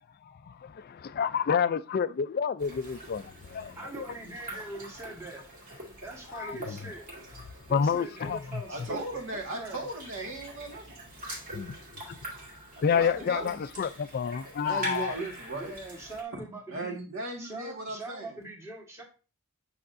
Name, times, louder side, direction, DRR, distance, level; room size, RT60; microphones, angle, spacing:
voice 1, 0.5-3.8 6.3-6.8 7.7-8.6 8.9-9.0 11.5-11.8 12.1-12.2 12.8-15.1, left 6 dB, 45° left, 0.3 m, -29 dB
sound 1, 2.6-16.2, right 1 dB, 40° right, 2.1 m, -44 dB
voice 2, 3.7-5.4 6.0-7.0 7.7-9.9 15.5-17.0 17.4-19.0, right 2 dB, 15° right, 1.5 m, -42 dB
voice 3, 8.7-10.9 12.7-13.7 14.6-15.7 16.3-16.4 16.7-18.4, right 2 dB, 60° right, 1.8 m, -37 dB
8.4 x 5.7 x 2.6 m
head